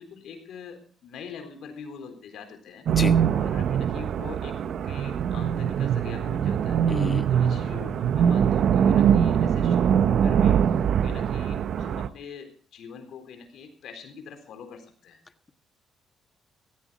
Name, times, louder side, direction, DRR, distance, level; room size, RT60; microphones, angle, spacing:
voice 1, 0.0-2.9 3.3-6.8 7.3-15.2, left 6 dB, 75° left, 6 dB, 4.0 m, -43 dB
sound 1, 2.9-12.1, right 8 dB, 65° right, 0.7 m, -23 dB
voice 2, 6.9-7.3, left 3 dB, 25° left, 9 dB, 1.5 m, -29 dB
17.0 x 14.5 x 4.0 m, 0.43 s
cardioid pair, 90°, 0 cm